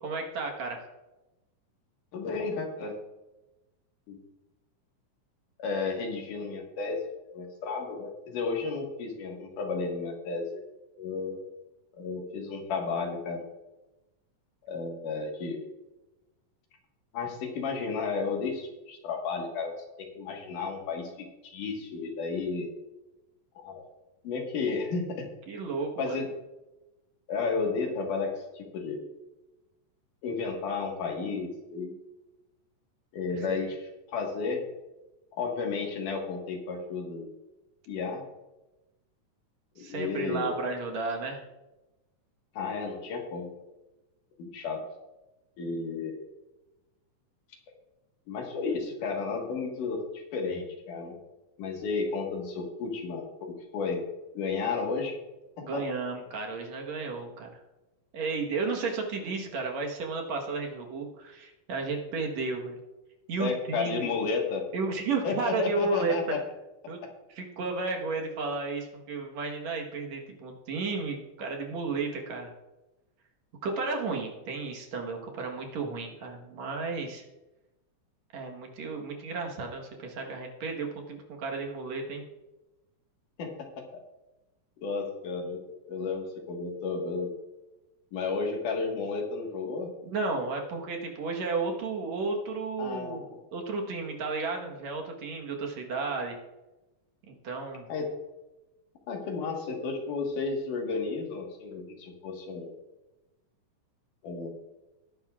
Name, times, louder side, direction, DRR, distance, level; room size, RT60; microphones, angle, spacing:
voice 1, 0.0-0.9 25.5-26.2 33.3-33.6 39.8-41.4 55.6-57.6 58.1-62.8 63.3-64.1 64.7-66.1 66.9-67.0 67.3-72.5 73.6-77.2 78.3-82.2 90.0-93.2 93.5-96.4 97.3-97.9, right 3 dB, 65° right, 1 dB, 2.4 m, -33 dB
voice 2, 2.1-3.0 4.1-4.2 5.6-7.0 7.3-10.6 11.0-11.4 11.9-13.5 14.7-15.7 17.1-22.7 23.6-23.8 24.2-25.3 26.0-26.3 27.3-29.0 30.2-32.0 33.1-34.7 35.3-37.3 37.9-38.2 39.8-40.5 42.5-43.5 44.4-44.8 45.6-46.2 48.3-51.2 51.6-54.0 54.3-55.2 55.6-55.8 63.4-64.7 65.2-66.4 83.4-84.0 84.8-85.6 85.9-87.3 88.1-89.9 92.8-93.4 97.9-98.1 99.1-102.7 104.2-104.5, left 4 dB, 80° left, 1 dB, 3.1 m, -33 dB
19.5 x 10.5 x 2.4 m, 1.0 s
omnidirectional pair, 3.6 m